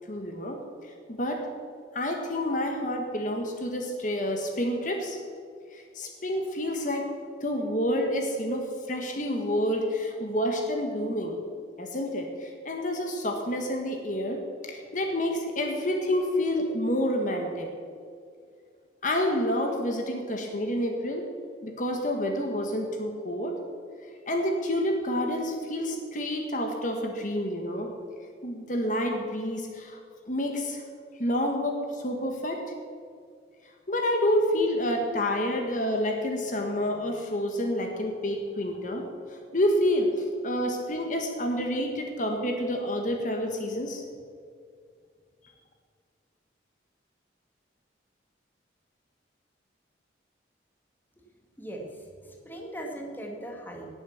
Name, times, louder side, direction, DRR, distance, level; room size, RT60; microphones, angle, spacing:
voice 1, 0.1-1.4 1.9-5.2 5.7-7.1 7.4-11.4 11.8-17.7 19.0-21.3 21.6-23.6 24.3-27.9 28.4-30.0 30.3-30.8 31.2-32.6 33.9-39.1 39.5-40.1 40.4-44.0, left 1 dB, 45° left, 3 dB, 1.4 m, -28 dB
voice 2, 51.6-53.9, right 1 dB, 10° left, 1 dB, 1.7 m, -39 dB
18.5 x 7.5 x 7.1 m, 2.2 s
head